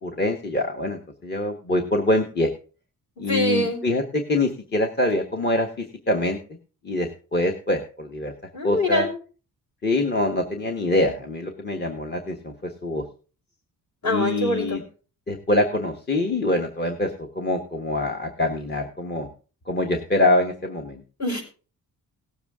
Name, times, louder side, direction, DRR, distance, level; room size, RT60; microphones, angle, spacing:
voice 1, 0.0-2.5 3.2-6.4 6.8-8.3 8.6-9.0 9.8-13.0 14.0-14.8 15.3-19.3 19.7-21.0, left 2 dB, 30° left, 3 dB, 1.3 m, -24 dB
voice 2, 3.3-3.8 8.5-9.1 14.0-14.8 21.2-21.4, left 1 dB, 50° left, 1 dB, 5.3 m, -24 dB
18.0 x 7.1 x 3.6 m, 0.37 s
cardioid pair, 130°, 35 cm